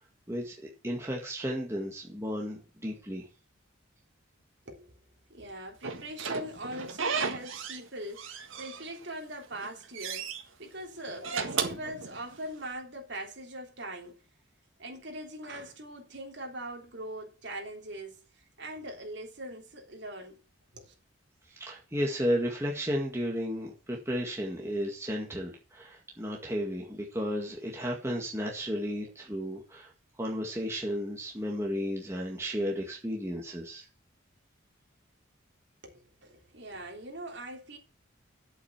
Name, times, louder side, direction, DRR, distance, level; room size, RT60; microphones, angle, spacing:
voice 1, 0.3-3.3 21.5-29.9 30.2-33.9, equal, 15° right, 1.9 m, -33 dB
voice 2, 4.6-5.0 5.3-14.2 14.8-20.4 20.7-20.9 35.8-37.8, right 1 dB, 55° right, 3.4 m, -41 dB
Slam / Squeak, 5.8-7.9 8.2-9.1 9.5-10.4 11.1-12.6, right 5 dB, 75° right, 1.7 m, -34 dB
8.8 x 8.2 x 7.2 m
head